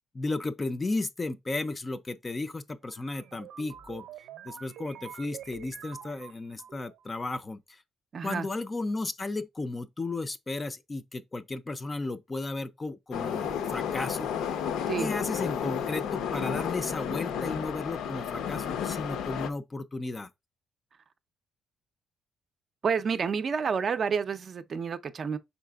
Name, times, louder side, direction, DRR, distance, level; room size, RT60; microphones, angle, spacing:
voice 1, 0.1-4.1 4.5-7.8 8.2-14.3 15.0-20.3, left 2 dB, 20° left, 0.4 m, -34 dB
sound 1, 2.8-7.0, right 9 dB, 85° right, 0.6 m, -46 dB
voice 2, 8.1-8.4 14.9-15.1 22.8-25.4, right 6 dB, 40° right, 0.5 m, -29 dB
Subway metro underground, 13.1-19.5, left 8 dB, 85° left, 0.7 m, -32 dB
5.6 x 4.0 x 2.3 m
cardioid pair, 155°, 0 cm